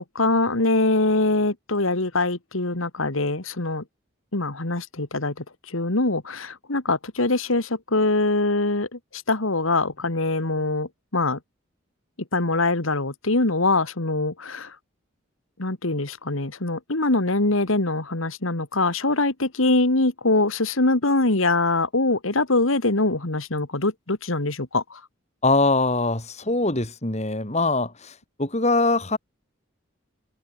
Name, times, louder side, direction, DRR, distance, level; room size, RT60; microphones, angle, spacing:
voice 1, 0.1-3.8 4.3-5.3 5.7-11.4 12.3-14.7 15.6-25.0, left 2 dB, 75° left, 2.3 m, -23 dB
voice 2, 25.4-29.2, left 2 dB, 30° left, 3.1 m, -23 dB
open air
head